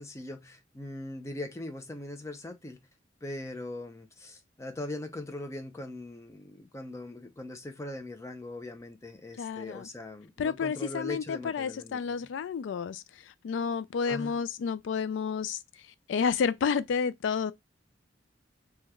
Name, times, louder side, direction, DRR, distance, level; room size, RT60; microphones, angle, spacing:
voice 1, 0.0-2.9 3.2-12.3 14.1-14.4, left 2 dB, 15° left, 0.4 m, -40 dB
voice 2, 9.4-9.9 10.4-13.0 13.4-15.6 16.1-17.5, left 6 dB, 80° left, 0.3 m, -30 dB
3.0 x 2.2 x 3.4 m
head